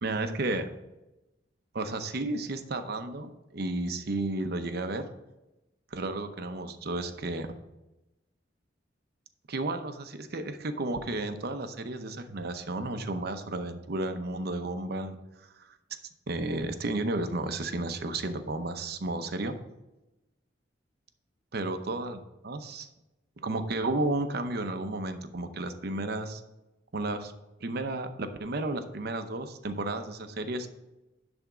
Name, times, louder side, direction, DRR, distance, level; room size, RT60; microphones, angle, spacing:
voice 1, 0.0-0.7 1.7-5.1 5.9-7.5 9.5-15.2 15.6-15.8 16.3-19.5 21.5-22.9 23.4-26.4 26.9-27.3 27.6-30.7, right 2 dB, 60° right, 8 dB, 0.7 m, -32 dB
10.5 x 3.5 x 6.0 m, 0.99 s
head